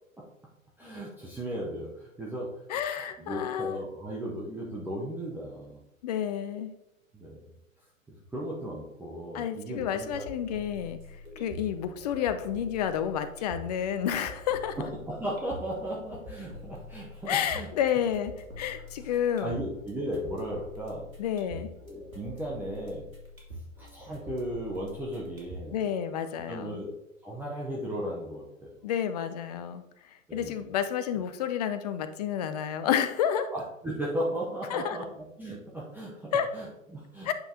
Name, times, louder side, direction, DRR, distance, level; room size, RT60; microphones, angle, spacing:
voice 1, 0.8-2.5 2.8-5.8 7.1-7.4 8.3-10.2 11.2-11.5 14.8-17.7 19.0-19.1 19.4-21.1 21.5-23.1 23.8-25.8 26.5-26.9 27.2-28.8 30.3-30.7 33.5-37.3, right 1 dB, 5° right, -5 dB, 0.7 m, -36 dB
voice 2, 2.7-3.8 6.0-6.7 9.3-11.0 11.4-14.8 17.3-18.3 18.6-19.6 21.2-21.7 25.7-26.8 28.8-29.8 30.3-33.5 34.7-35.0 36.3-36.5 37.3-37.4, left 9 dB, 30° left, 10 dB, 0.5 m, -30 dB
sound 1, 9.8-25.8, left 1 dB, 85° right, 2.7 m, -46 dB
8.7 x 5.4 x 2.8 m, 0.88 s
figure-of-eight pair, 110°, 41 cm